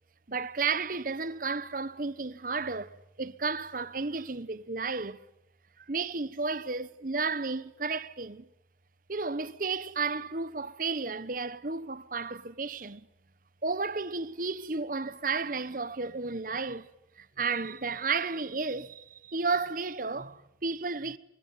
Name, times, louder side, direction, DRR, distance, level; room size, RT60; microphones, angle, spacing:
voice 1, 0.3-5.2 5.9-8.5 9.1-13.0 13.6-16.9 17.2-21.2, right 4 dB, 45° right, 1.0 m, -33 dB
25.5 x 24.0 x 9.3 m
head